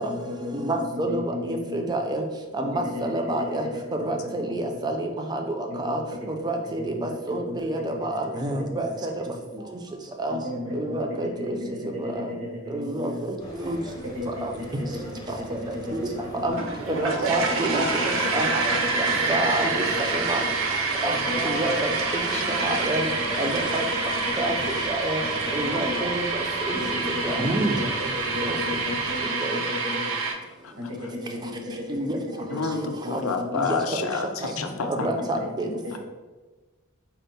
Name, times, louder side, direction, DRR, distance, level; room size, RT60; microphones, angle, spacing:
voice 1, 0.0-1.8 2.6-3.7 4.0-4.9 5.7-6.0 6.6-7.9 8.2-8.8 9.2-9.4 10.3-13.3 14.0-16.6 17.2-19.6 19.9-20.0 20.4-20.5 21.1-24.8 25.2-26.0 26.7-30.0 30.8-33.8 34.9-36.0, left 2 dB, 85° right, -3 dB, 0.9 m, -35 dB
voice 2, 0.5-1.1 1.5-2.2 2.6-2.7 3.0-3.6 4.0-5.4 5.9-6.0 6.4-6.6 6.9-7.0 7.3-8.9 10.2-10.4 10.8-11.3 12.7-13.1 13.7-13.8 16.4-16.6 17.0-17.8 18.3-18.5 19.3-19.8 20.3-20.4 21.0-21.2 21.4-21.7 22.6-23.0 23.4-23.8 24.4-24.5 25.0-25.2 25.6-26.1 26.7-26.8 27.4-27.8 29.5-29.6 31.9-32.2 35.0-35.4, right 1 dB, 20° right, 3 dB, 0.4 m, -27 dB
sound 1, 13.4-29.2, equal, 20° left, 0.7 m, -39 dB
sound 2, 16.5-30.3, right 4 dB, 70° right, 0.5 m, -27 dB
voice 3, 22.3-22.7 30.6-30.7 32.5-35.1 35.7-36.0, left 4 dB, 85° left, 6 dB, 0.5 m, -30 dB
4.3 x 2.0 x 4.0 m, 1.3 s
head